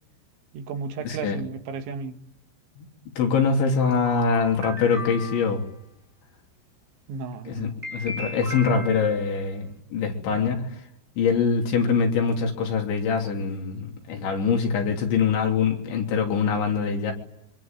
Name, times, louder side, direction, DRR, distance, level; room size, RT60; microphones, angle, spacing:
voice 1, 0.5-2.2 7.1-7.8, right 5 dB, 85° right, 4.1 m, -34 dB
voice 2, 1.1-1.4 2.8-2.9 3.2-5.6 7.5-10.7 11.2-17.1, left 5 dB, 85° left, 5.6 m, -24 dB
sound 1, 3.8-5.6 7.8-9.3, left 2 dB, 15° right, 6.1 m, -37 dB
26.5 x 24.5 x 9.1 m
omnidirectional pair, 5.1 m